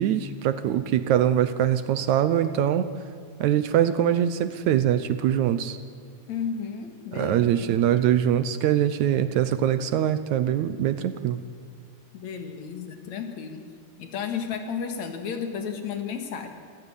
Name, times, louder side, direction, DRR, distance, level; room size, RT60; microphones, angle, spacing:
voice 1, 0.0-2.9 3.4-5.8 7.1-11.4, right 10 dB, 70° right, 13 dB, 2.0 m, -23 dB
voice 2, 6.3-8.0 12.1-13.7 14.0-16.5, left 6 dB, 60° left, 6 dB, 3.0 m, -33 dB
26.0 x 15.0 x 9.9 m, 2.1 s
omnidirectional pair, 3.8 m